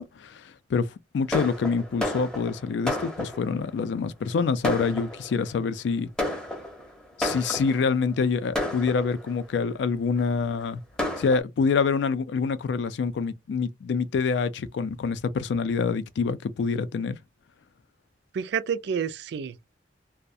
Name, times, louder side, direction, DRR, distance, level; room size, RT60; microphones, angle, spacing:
voice 1, 0.0-6.1 7.2-10.8 11.2-17.2, left 5 dB, 75° left, 0.3 m, -26 dB
Fireworks, 1.3-3.7 4.3-4.4 4.6-5.5 6.2-7.9 8.5-9.5 10.2-10.3 10.6-10.7 11.0-11.4, left 1 dB, 5° left, 0.6 m, -31 dB
voice 2, 18.3-19.8, right 7 dB, 65° right, 0.3 m, -30 dB
2.3 x 2.1 x 2.6 m
head